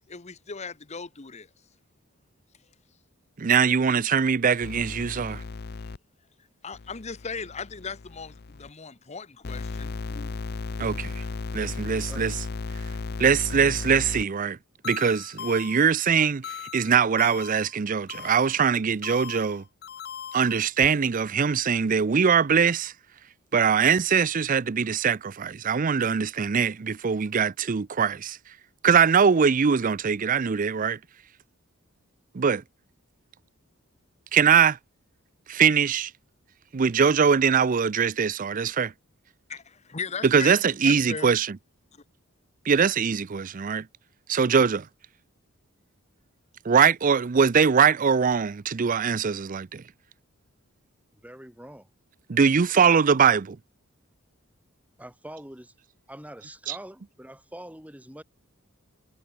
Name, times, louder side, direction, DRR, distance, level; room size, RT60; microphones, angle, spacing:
voice 1, 0.1-1.5 6.6-10.3 39.5-41.3, left 5 dB, 30° left, 0.9 m, -38 dB
voice 2, 3.4-5.4 10.8-11.2 11.5-12.3 13.2-14.6 14.8-19.6 20.3-22.9 23.5-28.4 28.8-31.0 32.3-32.6 34.3-34.8 35.5-36.1 36.7-38.9 40.2-41.6 42.7-43.9 44.3-44.9 46.7-49.8 52.3-53.6 56.7-56.8, right 6 dB, 40° right, 0.5 m, -22 dB
sound 1, 4.6-6.0 6.7-8.7 9.4-14.2 14.8-15.9 16.4-17.7 18.1-18.6 19.0-20.9, left 4 dB, 50° left, 0.6 m, -36 dB
voice 3, 51.2-51.9 55.0-55.7 56.1-58.2, right 1 dB, 5° right, 4.7 m, -44 dB
head